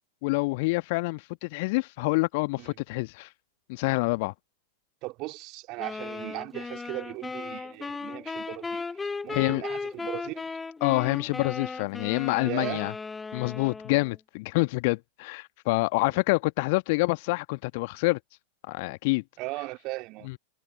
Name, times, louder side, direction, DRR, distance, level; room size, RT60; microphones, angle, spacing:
voice 1, 0.2-3.3 3.7-4.3 9.3-9.6 10.8-12.9 13.3-18.2 18.7-19.2, left 25 dB, 50° left, 1.4 m, -27 dB
voice 2, 5.0-8.8 9.2-10.6 12.4-12.9 19.4-20.3, right 22 dB, 40° right, 3.6 m, -37 dB
sound 1, 5.8-14.2, left 4 dB, 10° left, 0.7 m, -36 dB
figure-of-eight pair, 90°, 0 cm